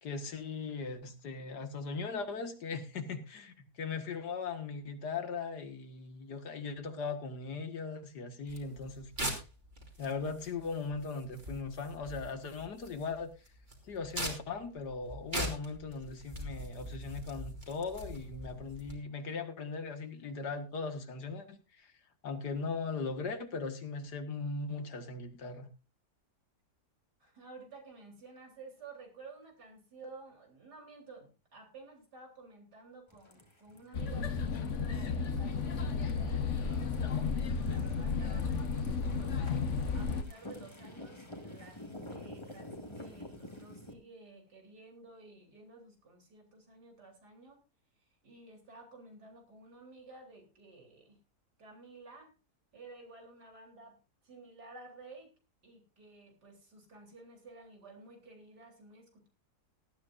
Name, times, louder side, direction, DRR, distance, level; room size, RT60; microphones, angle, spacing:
voice 1, 0.0-9.4 10.0-13.3 13.8-21.9 22.2-25.7, left 4 dB, 85° left, 7 dB, 2.2 m, -39 dB
sound 1, 8.5-18.9, right 1 dB, 30° right, 3.1 m, -42 dB
voice 2, 27.2-37.2 37.6-47.6 48.2-51.2 51.6-52.3 52.7-54.0 54.2-55.3 55.6-59.3, right 3 dB, 85° right, 2 dB, 4.3 m, -53 dB
sound 2, 33.1-43.9, left 1 dB, 15° left, 1.8 m, -50 dB
sound 3, 33.9-40.2, left 5 dB, 50° left, 1.4 m, -33 dB
18.5 x 13.0 x 2.6 m, 0.29 s
omnidirectional pair, 1.7 m